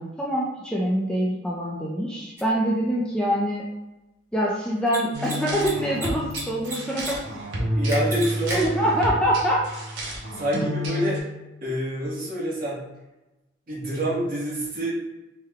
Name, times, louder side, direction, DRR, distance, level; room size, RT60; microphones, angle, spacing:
voice 1, 0.0-3.6 4.3-7.2 8.5-9.6, equal, 5° left, -5 dB, 0.3 m, -25 dB
Mechanisms, 2.4-2.5 4.8-5.0 5.2-5.3 5.6-6.4 6.6-7.1 7.4-7.5 7.9-8.6, right 1 dB, 15° right, 0.8 m, -32 dB
sound 1, 5.1-11.2, equal, 65° right, 0.8 m, -30 dB
voice 2, 7.7-8.6 10.3-11.2 11.6-12.8 13.7-14.9, right 1 dB, 45° right, -6 dB, 1.2 m, -27 dB
3.5 x 2.2 x 3.4 m, 1.0 s
head